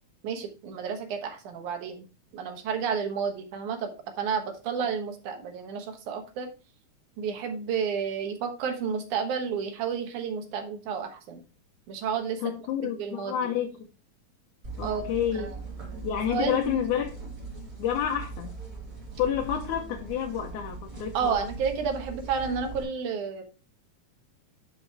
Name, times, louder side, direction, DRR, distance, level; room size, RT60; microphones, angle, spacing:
voice 1, 0.2-2.1 2.3-6.5 7.2-11.4 11.9-12.4 13.0-13.4 14.8-15.1 15.3-15.5 16.3-16.7 21.1-23.4, right 6 dB, 80° right, 5 dB, 2.7 m, -31 dB
voice 2, 12.4-13.8 14.8-15.5 16.0-17.2 17.8-18.6 19.2-21.4, left 9 dB, 80° left, 1 dB, 2.4 m, -29 dB
sound 1, 14.6-22.8, right 4 dB, 40° right, 3.8 m, -40 dB
10.0 x 5.1 x 3.4 m, 0.32 s
omnidirectional pair, 3.4 m